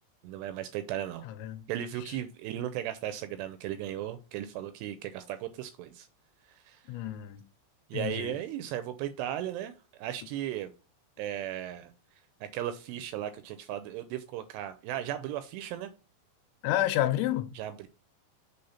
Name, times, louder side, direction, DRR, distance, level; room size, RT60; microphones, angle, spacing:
voice 1, 0.2-1.3 1.7-6.1 6.5-6.8 7.9-10.7 11.2-11.9 12.4-15.9 17.5-17.9, right 11 dB, 85° right, 2.4 m, -36 dB
voice 2, 1.2-1.6 2.1-2.2 6.9-7.4 7.9-8.3 16.6-17.5, left 13 dB, 90° left, 3.1 m, -30 dB
6.9 x 3.4 x 5.5 m
omnidirectional pair, 5.3 m